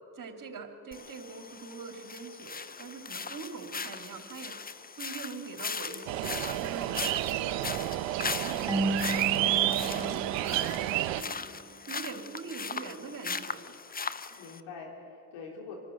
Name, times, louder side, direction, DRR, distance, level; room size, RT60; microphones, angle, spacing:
voice 1, 0.1-4.6 5.0-7.6 8.1-11.4 11.9-13.6, right 4 dB, 45° right, 4 dB, 3.0 m, -43 dB
sound 1, 0.9-14.6, left 5 dB, 20° left, 0.7 m, -39 dB
sound 2, 6.1-11.2, right 15 dB, 70° right, 0.8 m, -30 dB
Marimba xylophone / Wood, 8.7-11.4, right 1 dB, 10° right, 1.6 m, -34 dB
voice 2, 9.9-10.5 14.2-15.8, left 5 dB, 75° left, 0 dB, 4.0 m, -45 dB
25.5 x 12.5 x 8.1 m, 2.6 s
hypercardioid pair, 45°, 46 cm